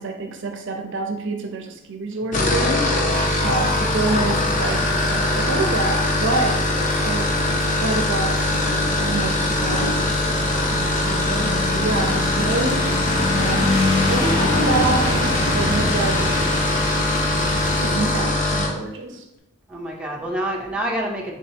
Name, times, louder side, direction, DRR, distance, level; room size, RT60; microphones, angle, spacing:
voice 1, 0.0-2.9 3.4-6.7 7.0-8.4 8.9-13.0 13.3-13.7 14.1-16.4 16.7-17.1 17.8-19.3, right 2 dB, 60° right, 4 dB, 0.5 m, -27 dB
sound 1, 2.2-18.8, left 2 dB, 35° left, 0.6 m, -22 dB
sound 2, 3.1-18.2, equal, 20° left, 1.3 m, -34 dB
sound 3, 4.4-17.9, left 2 dB, 65° left, 0.8 m, -28 dB
voice 2, 19.7-21.4, right 1 dB, 5° right, -2 dB, 0.5 m, -28 dB
4.2 x 3.6 x 2.8 m, 0.85 s
head